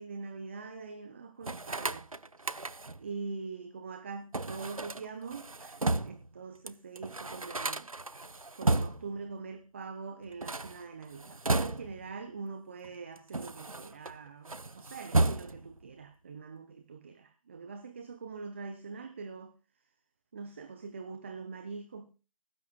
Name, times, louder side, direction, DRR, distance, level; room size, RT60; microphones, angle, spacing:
voice 1, 0.0-2.1 3.0-7.9 8.6-19.5 20.3-22.1, right 4 dB, 20° right, 0.7 m, -43 dB
sound 1, 1.4-3.1 4.3-6.3 6.7-6.8 7.0-9.2 10.3-12.1 12.8-14.1 14.4-15.8, right 2 dB, 85° right, 0.9 m, -33 dB
20.5 x 11.5 x 2.3 m
figure-of-eight pair, 160°, 17 cm